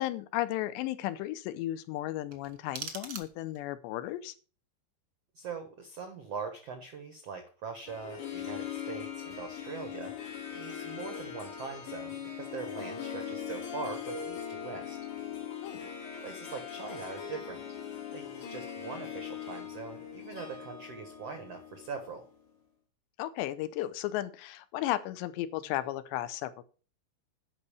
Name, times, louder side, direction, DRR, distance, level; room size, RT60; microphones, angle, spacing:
voice 1, 0.0-4.3 15.6-15.8 23.2-26.6, left 14 dB, 85° left, 14 dB, 2.9 m, -34 dB
sound 1, 2.3-3.7, right 6 dB, 55° right, 1.4 m, -43 dB
voice 2, 5.3-10.1 10.5-15.0 16.2-17.6 18.1-22.2, right 5 dB, 80° right, 6 dB, 1.4 m, -42 dB
Harp, 7.9-22.3, left 8 dB, 70° left, 4.8 m, -40 dB
11.0 x 5.6 x 6.9 m, 0.38 s
omnidirectional pair, 5.1 m